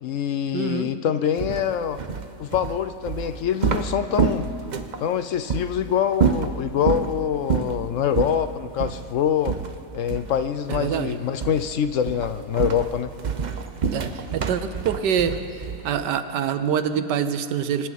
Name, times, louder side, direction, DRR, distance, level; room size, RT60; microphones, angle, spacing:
voice 1, 0.0-2.0 2.4-4.5 5.0-9.6 9.9-13.1, left 8 dB, 65° left, 11 dB, 0.8 m, -25 dB
voice 2, 0.5-0.9 10.7-11.2 13.9-15.4 15.8-17.9, right 8 dB, 85° right, 11 dB, 1.5 m, -25 dB
sound 1, 1.4-5.0 5.5-5.7 6.1-7.1 7.5-7.8 8.1-8.4 8.8-9.0 9.4-10.4 10.7-11.1 11.4-11.7 12.0-16.0, right 6 dB, 50° right, 0.5 m, -27 dB
26.0 x 25.0 x 4.1 m, 2.6 s
omnidirectional pair, 1.8 m